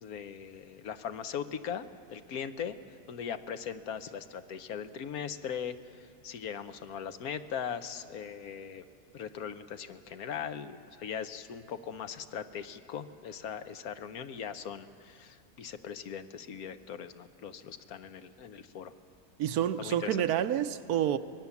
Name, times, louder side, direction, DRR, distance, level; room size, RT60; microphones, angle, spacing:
voice 1, 0.0-2.8 3.1-8.8 9.1-18.9 19.8-20.2, left 7 dB, 75° left, 1.3 m, -40 dB
voice 2, 19.4-21.2, right 10 dB, 80° right, 1.2 m, -28 dB
24.5 x 20.0 x 7.1 m
omnidirectional pair, 1.6 m